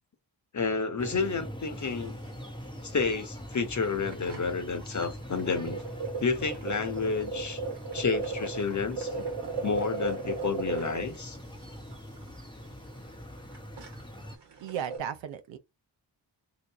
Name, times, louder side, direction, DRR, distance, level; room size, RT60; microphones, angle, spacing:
voice 1, 0.5-2.2 2.8-5.8 6.2-7.6 7.9-9.2 9.6-11.4, left 4 dB, 40° left, 1.1 m, -30 dB
sound 1, 1.0-14.4, equal, 10° left, 0.7 m, -43 dB
sound 2, 1.7-2.2 2.5-2.6 2.8-3.0 3.5-3.6 3.8-15.0, right 4 dB, 65° right, 1.2 m, -37 dB
voice 2, 14.6-15.6, right 9 dB, 90° right, 0.7 m, -35 dB
2.9 x 2.5 x 3.4 m
cardioid pair, 50°, 44 cm